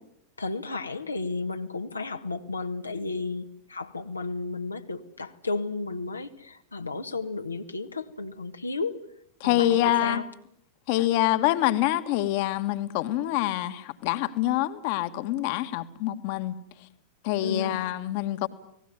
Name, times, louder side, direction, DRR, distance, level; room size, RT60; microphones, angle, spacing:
voice 1, 0.4-8.9 9.4-10.2 17.4-17.8, left 3 dB, 80° left, 5 dB, 1.5 m, -33 dB
voice 2, 9.4-10.2 10.9-16.6 17.2-18.5, left 14 dB, 45° left, 10 dB, 1.6 m, -26 dB
29.5 x 19.0 x 9.5 m, 0.76 s
figure-of-eight pair, 90°, 0 cm